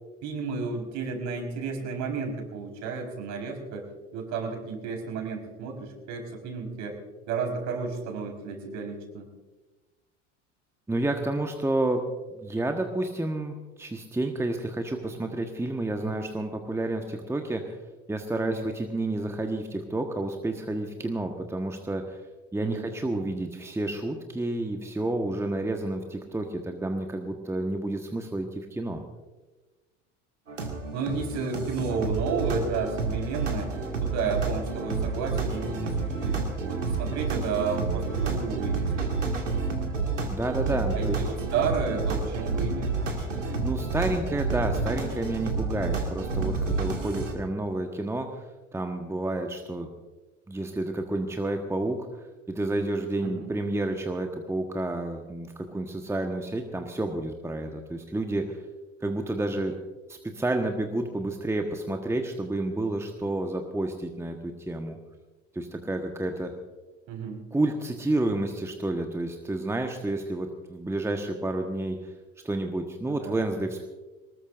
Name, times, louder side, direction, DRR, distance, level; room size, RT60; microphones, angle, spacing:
voice 1, 0.2-6.9 7.3-9.3 16.0-16.2 18.4-18.7 22.6-22.9 30.9-33.7 34.0-39.1 40.9-42.9 53.2-53.5 67.1-67.4 73.1-73.4, right 5 dB, 50° right, 3 dB, 4.5 m, -32 dB
voice 2, 10.9-12.0 12.3-17.8 18.1-22.2 22.5-29.0 40.3-41.2 43.6-49.9 50.5-52.2 52.5-58.7 59.0-59.8 60.1-65.0 65.5-66.5 67.5-72.1 72.4-73.9, right 2 dB, 5° right, 4 dB, 1.3 m, -30 dB
sound 1, 30.5-47.3, right 3 dB, 85° right, 2.0 m, -29 dB
23.0 x 20.0 x 2.6 m, 1.2 s
figure-of-eight pair, 65°, 37 cm